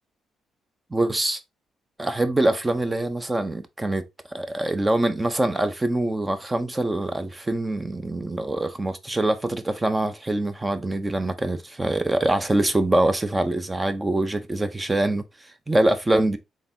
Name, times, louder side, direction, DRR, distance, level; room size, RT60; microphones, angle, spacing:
voice 1, 0.9-1.4 2.0-4.0 4.3-15.2 15.7-16.4, right 1 dB, 15° right, 0.6 m, -24 dB
3.9 x 3.6 x 2.7 m
cardioid pair, 90°, 0 cm